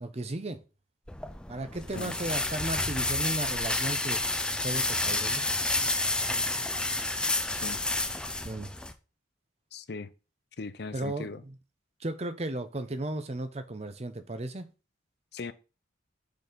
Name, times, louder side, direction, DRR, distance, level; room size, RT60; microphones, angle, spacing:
voice 1, 0.0-0.6 1.5-4.2 4.6-5.4 8.4-8.7 10.9-11.3 12.0-14.7, right 2 dB, 35° right, 0.7 m, -35 dB
sound 1, 1.1-8.9, left 2 dB, 5° left, 0.5 m, -30 dB
voice 2, 9.7-10.1 10.6-11.4 15.3-15.5, left 4 dB, 55° left, 0.6 m, -38 dB
6.7 x 4.1 x 5.1 m
head